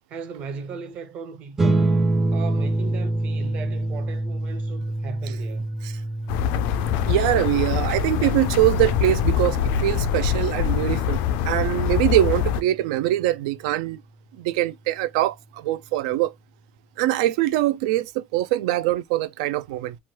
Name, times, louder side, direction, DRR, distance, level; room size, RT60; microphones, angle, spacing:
voice 1, 0.1-1.9 2.3-5.8, right 5 dB, 35° right, 0.7 m, -37 dB
sound 1, 1.6-12.3, right 2 dB, 10° right, 0.4 m, -27 dB
sound 2, 6.3-12.6, left 9 dB, 55° left, 0.4 m, -24 dB
voice 2, 7.1-14.0 14.4-16.3 17.0-20.0, right 15 dB, 70° right, 0.4 m, -23 dB
3.1 x 2.2 x 2.9 m
cardioid pair, 170°, 4 cm